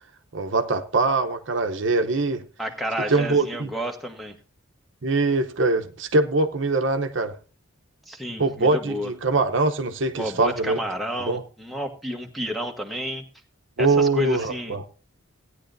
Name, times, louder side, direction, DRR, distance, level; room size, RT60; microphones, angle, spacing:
voice 1, 0.3-2.4 3.1-3.7 5.0-7.4 8.4-10.8 11.2-11.4 13.8-14.8, right 3 dB, 60° right, 0.8 m, -23 dB
voice 2, 2.6-4.4 8.1-9.1 10.2-13.2 13.8-14.8, equal, ahead, 1.1 m, -30 dB
16.5 x 9.8 x 2.6 m
head